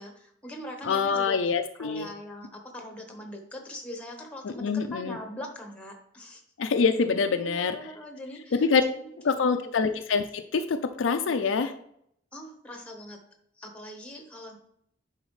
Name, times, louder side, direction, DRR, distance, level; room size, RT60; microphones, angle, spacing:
voice 1, 0.0-1.4 1.8-6.4 7.3-9.8 12.3-13.2 13.6-14.6, left 1 dB, 5° left, 3 dB, 1.2 m, -42 dB
voice 2, 0.8-2.1 4.4-5.2 6.6-7.8 8.5-8.8 9.2-11.7, left 5 dB, 70° left, 8 dB, 0.5 m, -25 dB
10.5 x 4.2 x 3.1 m, 0.72 s
head